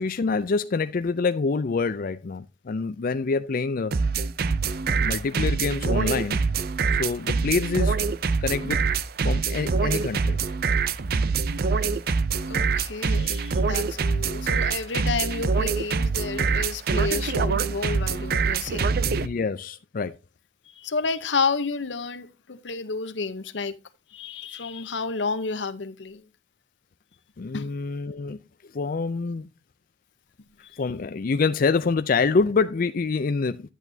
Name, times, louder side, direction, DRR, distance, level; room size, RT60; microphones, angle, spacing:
voice 1, 0.0-4.0 5.0-6.4 7.0-8.0 8.4-8.8 9.2-10.4 19.1-20.2 27.4-28.4 28.7-29.5 30.8-33.7, left 4 dB, 50° left, 0.4 m, -26 dB
sound 1, 3.9-19.3, right 5 dB, 55° right, 0.5 m, -24 dB
voice 2, 12.5-19.0 20.7-23.7 24.1-26.3 27.5-27.7, left 4 dB, 85° left, 0.8 m, -30 dB
11.0 x 8.3 x 2.7 m
head